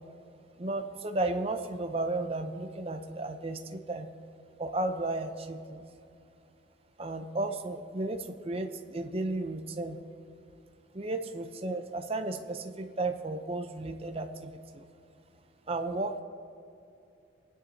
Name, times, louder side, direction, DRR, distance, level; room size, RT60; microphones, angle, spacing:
voice 1, 0.6-4.1 4.6-5.8 7.0-10.0 10.9-14.8 15.7-16.2, right 2 dB, 30° right, 6 dB, 0.7 m, -34 dB
26.5 x 9.6 x 2.8 m, 2.7 s
head